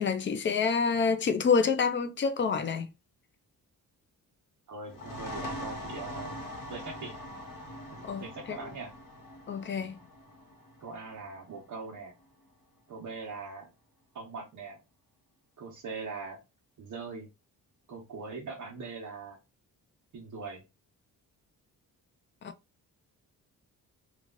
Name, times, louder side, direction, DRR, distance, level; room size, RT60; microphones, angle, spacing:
voice 1, 0.0-2.9 8.0-8.6 9.5-10.0 22.4-22.5, left 5 dB, 35° left, 0.4 m, -27 dB
voice 2, 4.7-7.1 7.9-8.9 10.8-12.1 12.9-13.7 14.1-14.8 15.6-16.4 16.8-17.3 17.9-19.4 20.1-20.6, right 4 dB, 55° right, 1.0 m, -41 dB
sound 1, 4.8-12.2, left 1 dB, 65° left, 1.4 m, -43 dB
3.1 x 2.4 x 3.7 m
wide cardioid pair, 160°, 36 cm